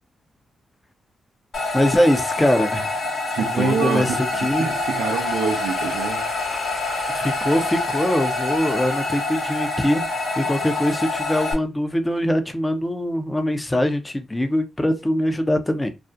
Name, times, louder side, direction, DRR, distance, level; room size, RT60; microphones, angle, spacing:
sound 1, 1.5-11.5, left 2 dB, 60° left, 0.8 m, -26 dB
voice 1, 1.7-3.0 3.4-4.7 7.1-15.9, left 1 dB, 20° left, 0.5 m, -22 dB
voice 2, 3.3-4.2 4.6-6.3, right 6 dB, 80° right, 0.4 m, -26 dB
2.4 x 2.0 x 2.6 m
supercardioid pair, 45°, 0 cm